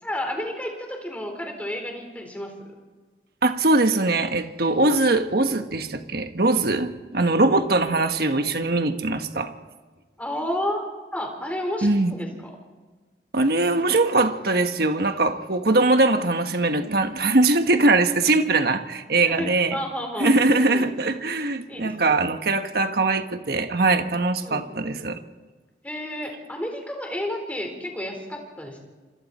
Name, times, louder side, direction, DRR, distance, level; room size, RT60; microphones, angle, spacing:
voice 1, 0.0-2.6 8.1-8.2 10.2-10.8 11.1-12.5 19.3-20.9 21.7-22.1 24.4-24.6 25.8-28.8, left 1 dB, 10° left, 4.3 m, -31 dB
voice 2, 3.4-9.5 11.8-12.2 13.3-19.8 20.2-25.2, right 2 dB, 60° right, 1.4 m, -21 dB
27.5 x 26.5 x 4.4 m
head